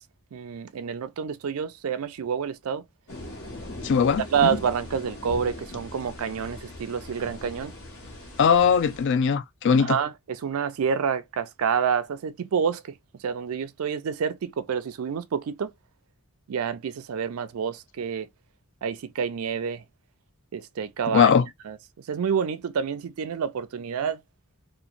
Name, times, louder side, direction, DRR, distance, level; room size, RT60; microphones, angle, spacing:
voice 1, 0.3-2.8 4.3-7.7 9.8-12.8 13.2-15.7 16.5-18.3 18.8-19.8 20.5-21.3 21.6-21.8 22.1-24.2, right 7 dB, 70° right, 0.4 m, -28 dB
sound 1, 3.1-9.0, left 1 dB, 85° left, 1.3 m, -40 dB
voice 2, 3.8-4.5 8.4-10.0 21.1-21.5, left 6 dB, 55° left, 0.4 m, -20 dB
2.9 x 2.1 x 2.5 m
head